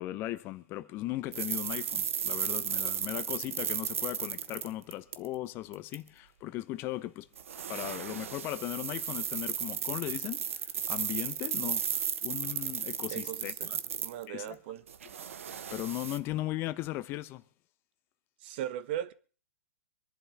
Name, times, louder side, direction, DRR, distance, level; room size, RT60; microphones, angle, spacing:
voice 1, 0.0-7.3 7.7-13.8 14.3-14.6 15.7-17.4, left 16 dB, 30° left, 0.8 m, -37 dB
sound 1, 1.3-5.4 5.7-6.0 7.4-14.5 14.9-16.2, right 8 dB, 65° right, 1.1 m, -34 dB
voice 2, 13.1-14.8 18.4-19.1, right 11 dB, 45° right, 1.1 m, -38 dB
24.5 x 11.0 x 3.5 m
figure-of-eight pair, 115°, 8 cm